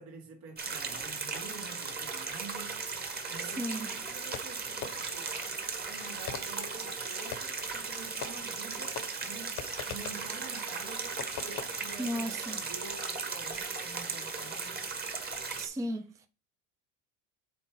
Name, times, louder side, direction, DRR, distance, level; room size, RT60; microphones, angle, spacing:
voice 1, 0.0-2.9 3.3-5.3 5.9-14.8 15.7-15.8, right 4 dB, 70° right, 2.2 m, -48 dB
sound 1, 0.6-15.7, right 4 dB, 25° right, 1.5 m, -37 dB
voice 2, 3.4-3.9 12.0-12.6 15.6-16.3, equal, 10° right, 0.5 m, -35 dB
Fireworks, 4.3-5.3 6.3-7.6 8.2-8.7 9.0-10.3 11.2-11.7, left 10 dB, 60° left, 0.9 m, -42 dB
7.1 x 3.7 x 4.5 m
supercardioid pair, 110°, 36 cm